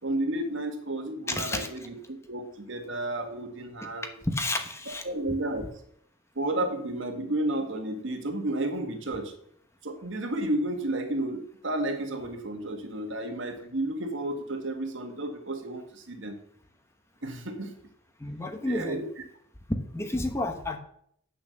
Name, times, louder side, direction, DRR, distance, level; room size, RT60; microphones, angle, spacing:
voice 1, 0.0-4.1 4.9-5.7 6.3-9.3 9.8-16.4 17.2-17.7 18.6-19.1, right 1 dB, 60° right, 5 dB, 1.6 m, -32 dB
voice 2, 1.3-1.7 4.3-5.0 18.2-19.0 19.9-20.8, left 2 dB, 15° left, 5 dB, 0.9 m, -31 dB
8.4 x 7.1 x 6.5 m, 0.67 s
head